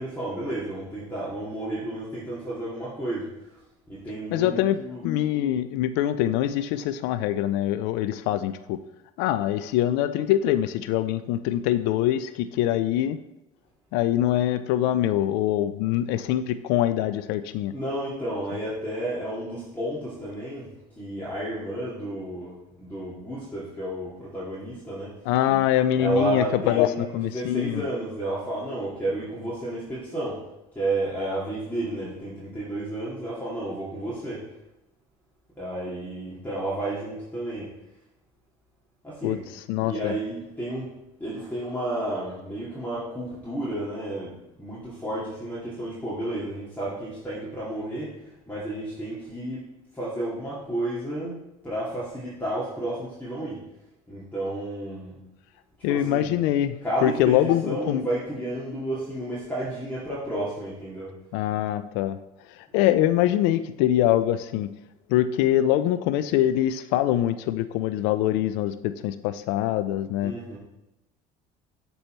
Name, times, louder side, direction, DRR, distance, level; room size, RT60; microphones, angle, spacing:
voice 1, 0.0-3.6 3.9-5.1 17.7-25.1 25.9-30.4 30.7-34.5 35.6-37.7 39.0-39.4 39.8-40.9 41.2-49.7 49.9-51.4 51.6-53.6 54.1-55.2 55.9-56.3 56.8-61.2 70.2-70.6, right 1 dB, 10° left, -9 dB, 2.3 m, -32 dB
voice 2, 4.3-4.8 5.0-8.8 9.2-13.2 13.9-17.7 25.3-27.8 39.2-39.4 39.7-40.1 55.8-56.8 57.0-58.0 61.3-62.2 62.5-64.7 65.1-70.3, left 12 dB, 75° left, 12 dB, 0.4 m, -24 dB
6.8 x 4.3 x 4.5 m, 0.94 s
supercardioid pair, 90°, 18 cm